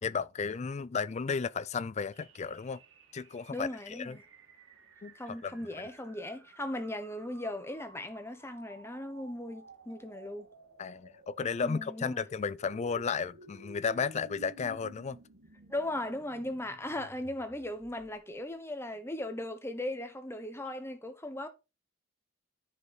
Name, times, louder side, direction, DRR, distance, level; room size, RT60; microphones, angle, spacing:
voice 1, 0.0-2.8 3.1-4.2 5.0-5.6 10.8-15.2, left 5 dB, 35° left, 0.4 m, -34 dB
sound 1, 2.1-18.4, right 2 dB, 70° right, 1.9 m, -55 dB
voice 2, 3.5-4.2 5.1-10.5 11.6-12.2 15.7-21.5, left 1 dB, 10° left, 1.1 m, -38 dB
9.7 x 4.5 x 4.9 m
head